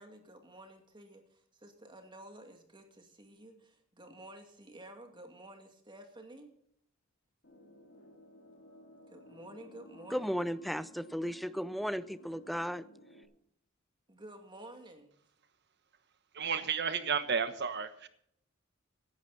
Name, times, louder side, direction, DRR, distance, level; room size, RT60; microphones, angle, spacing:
voice 1, 0.0-6.5 9.1-10.3 14.1-15.2, right 1 dB, 25° right, 2.3 m, -52 dB
sound 1, 7.4-13.2, left 1 dB, 60° left, 2.1 m, -56 dB
voice 2, 10.1-12.8, equal, ahead, 0.5 m, -35 dB
voice 3, 16.3-18.1, right 6 dB, 55° right, 1.2 m, -32 dB
16.0 x 11.5 x 4.1 m
head